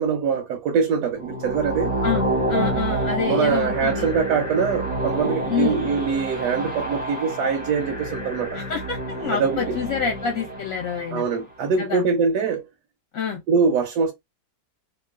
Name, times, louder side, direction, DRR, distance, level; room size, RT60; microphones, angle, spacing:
voice 1, 0.0-2.0 3.3-8.6 9.3-9.8 11.1-12.7 13.5-14.1, right 5 dB, 75° right, 1.1 m, -23 dB
sound 1, 1.2-11.3, right 1 dB, 10° right, 0.6 m, -28 dB
voice 2, 2.0-4.1 5.2-5.8 8.5-11.2 11.8-12.0 13.1-13.4, left 7 dB, 60° left, 1.1 m, -27 dB
2.9 x 2.1 x 2.2 m
omnidirectional pair, 1.8 m